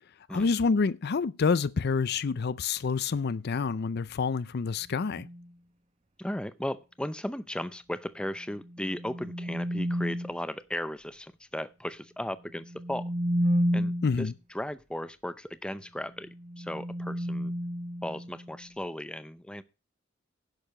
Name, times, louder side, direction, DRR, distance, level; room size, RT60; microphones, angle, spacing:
voice 1, 0.3-5.3 14.0-14.3, left 5 dB, 55° left, 0.5 m, -27 dB
sound 1, 5.0-5.5 8.6-10.4 12.6-14.2 16.2-18.6, equal, 35° right, 1.0 m, -31 dB
voice 2, 6.2-13.1 13.7-17.5 18.0-19.6, left 1 dB, 5° left, 0.5 m, -36 dB
10.5 x 6.6 x 6.5 m
head